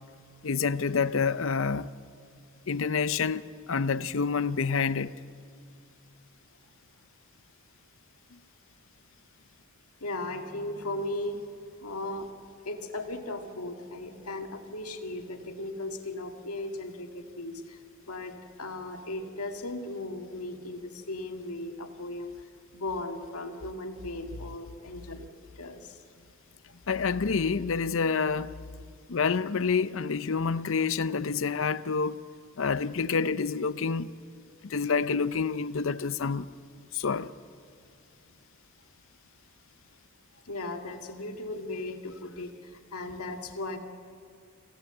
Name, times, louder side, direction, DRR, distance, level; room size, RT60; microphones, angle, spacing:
voice 1, 0.4-1.9 2.7-3.4 3.7-5.1 26.9-28.5 29.1-32.2 32.6-34.1 34.6-36.5 36.9-37.3, left 5 dB, 60° left, 0.6 m, -28 dB
voice 2, 10.0-12.3 12.6-17.8 18.1-25.3 25.6-26.0 26.7-26.8 40.3-43.8, left 2 dB, 85° left, 1.9 m, -37 dB
26.5 x 15.5 x 7.9 m
head